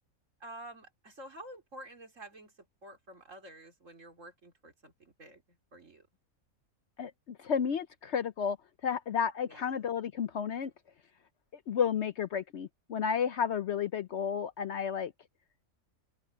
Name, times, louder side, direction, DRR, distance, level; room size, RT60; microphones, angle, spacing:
voice 1, 0.4-6.1 9.5-9.8, right 1 dB, 60° right, 4.1 m, -50 dB
voice 2, 7.0-8.6 8.8-10.7 11.7-15.1, left 7 dB, 60° left, 0.9 m, -32 dB
open air
omnidirectional pair, 1.5 m